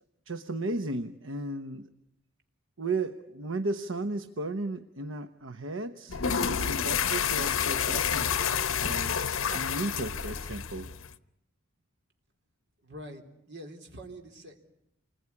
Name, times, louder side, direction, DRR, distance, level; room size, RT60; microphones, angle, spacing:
voice 1, 0.3-1.9 2.8-6.2 6.5-8.3 8.8-10.9, right 2 dB, 75° right, 8 dB, 1.0 m, -35 dB
sound 1, 6.1-11.1, left 7 dB, 80° left, 1.0 m, -29 dB
voice 2, 12.8-14.6, right 1 dB, 55° right, 3 dB, 3.8 m, -45 dB
28.5 x 21.0 x 9.8 m, 0.85 s
head